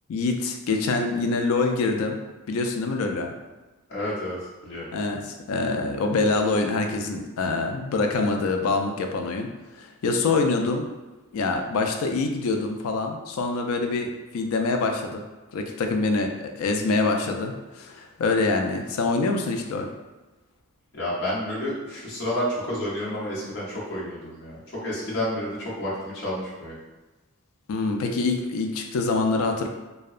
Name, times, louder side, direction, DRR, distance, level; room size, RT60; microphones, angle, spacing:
voice 1, 0.1-2.2 2.5-3.3 4.9-10.9 11.3-15.2 15.5-19.9 27.7-29.7, left 3 dB, 80° left, 4 dB, 0.3 m, -25 dB
voice 2, 3.9-4.9 20.9-26.8, left 1 dB, 50° left, -7 dB, 0.7 m, -30 dB
2.7 x 2.2 x 2.4 m, 1.2 s
head